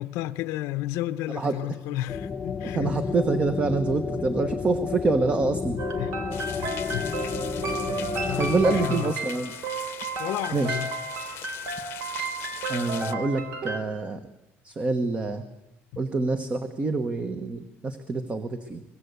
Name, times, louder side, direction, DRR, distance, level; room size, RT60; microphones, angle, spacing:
voice 1, 0.0-3.0 5.9-6.2 6.6-7.1 7.8-8.0 8.3-9.2 10.2-10.9, left 14 dB, 85° left, 0.8 m, -32 dB
sound 1, 2.1-8.9, left 6 dB, 25° left, 1.1 m, -31 dB
voice 2, 2.6-5.8 8.4-9.5 10.5-10.8 12.7-14.2 14.6-15.4 16.0-18.8, right 3 dB, 25° right, 1.2 m, -26 dB
sound 2, 5.8-13.8, right 3 dB, 65° right, 3.5 m, -33 dB
sound 3, 6.3-13.1, left 13 dB, 50° left, 0.9 m, -41 dB
24.5 x 21.0 x 8.2 m
cardioid pair, 165°, 5 cm